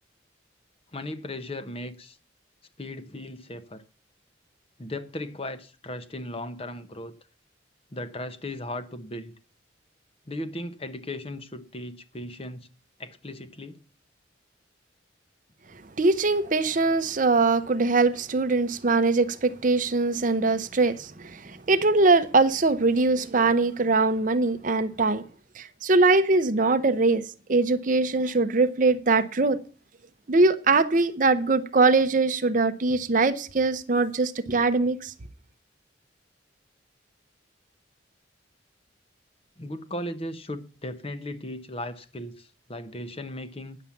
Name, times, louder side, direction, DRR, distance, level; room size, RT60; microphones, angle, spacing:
voice 1, 0.9-2.2 2.8-3.8 4.8-7.1 7.9-9.3 10.3-12.7 13.0-13.8 39.6-43.8, left 1 dB, 30° left, 0.9 m, -37 dB
voice 2, 16.0-25.2 25.5-29.6 30.3-35.1, right 3 dB, 45° right, 0.7 m, -22 dB
9.8 x 7.3 x 7.1 m
head